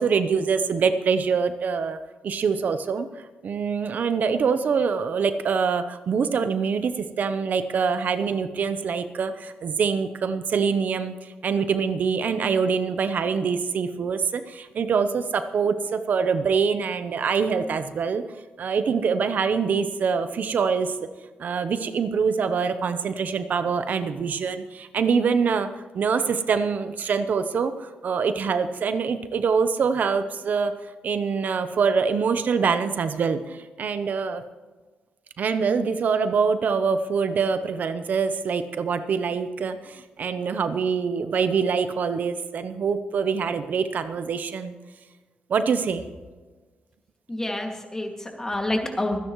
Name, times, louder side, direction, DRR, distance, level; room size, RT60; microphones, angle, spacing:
voice 1, 0.0-2.0 2.2-3.1 3.4-18.2 18.6-20.9 21.4-30.7 31.0-34.4 35.4-44.7 45.5-46.0, right 5 dB, 60° right, 10 dB, 0.8 m, -24 dB
voice 2, 47.3-49.2, left 1 dB, 15° left, 2 dB, 2.2 m, -28 dB
25.5 x 10.0 x 3.1 m, 1.4 s
cardioid pair, 105°, 3 cm